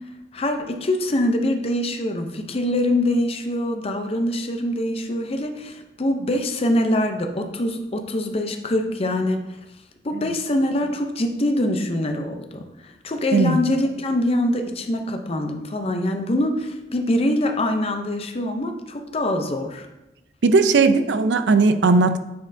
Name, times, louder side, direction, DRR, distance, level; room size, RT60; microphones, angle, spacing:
voice 1, 0.3-9.4 10.0-19.9, left 1 dB, 35° left, 5 dB, 0.6 m, -24 dB
voice 2, 20.4-22.2, right 3 dB, 85° right, 10 dB, 0.5 m, -17 dB
9.3 x 4.4 x 2.6 m, 0.96 s
head